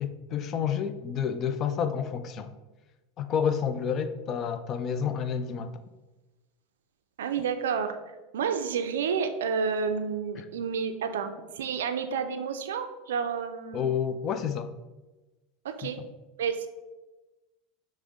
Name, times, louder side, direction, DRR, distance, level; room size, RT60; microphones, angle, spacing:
voice 1, 0.0-2.5 3.2-5.7 10.4-10.5 13.7-14.7 15.8-16.1, left 7 dB, 45° left, 10 dB, 0.4 m, -29 dB
voice 2, 7.2-8.0 8.3-13.9 15.6-16.0 16.4-16.7, right 6 dB, 80° right, 8 dB, 0.3 m, -30 dB
6.1 x 2.1 x 3.6 m, 1.1 s
hypercardioid pair, 90°, 0 cm